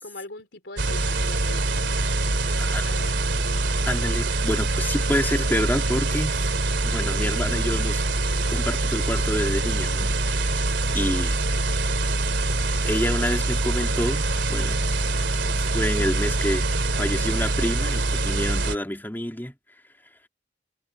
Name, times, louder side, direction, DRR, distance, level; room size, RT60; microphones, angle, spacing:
voice 1, 0.0-3.4, left 2 dB, 65° left, 4.5 m, -42 dB
sound 1, 0.8-18.8, right 2 dB, 75° right, 2.8 m, -24 dB
voice 2, 3.9-6.4 6.8-10.7 10.9-11.4 12.8-14.8 15.7-16.7 17.0-19.5, left 1 dB, 10° left, 2.9 m, -28 dB
head